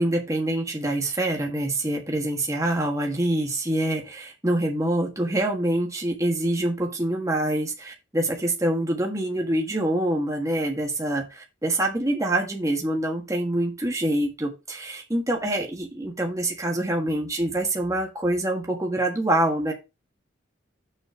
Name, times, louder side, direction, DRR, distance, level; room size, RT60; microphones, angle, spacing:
voice 1, 0.0-19.7, right 1 dB, 15° right, 1 dB, 1.4 m, -25 dB
6.8 x 4.3 x 5.2 m, 0.26 s
head